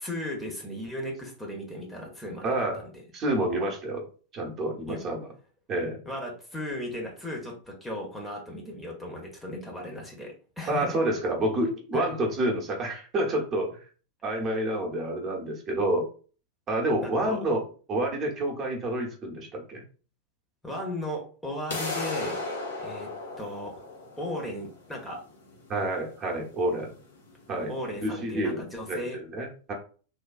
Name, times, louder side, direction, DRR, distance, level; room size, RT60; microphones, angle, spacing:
voice 1, 0.0-2.9 4.9-5.1 6.1-11.0 11.9-12.2 17.0-17.4 20.6-22.4 22.8-23.1 23.4-23.8 24.2-25.2 27.7-29.2, left 1 dB, 10° left, 0 dB, 0.8 m, -36 dB
voice 2, 2.4-2.9 3.1-4.1 4.3-5.3 5.7-6.0 10.7-13.8 14.2-16.1 16.7-17.6 17.9-19.8 25.7-26.9 27.5-27.7 28.0-28.6 28.9-29.7, right 1 dB, 30° right, 1 dB, 0.9 m, -28 dB
sound 1, 21.7-27.7, left 2 dB, 70° left, 0.8 m, -36 dB
3.3 x 2.3 x 2.4 m, 0.39 s
figure-of-eight pair, 90°, 0 cm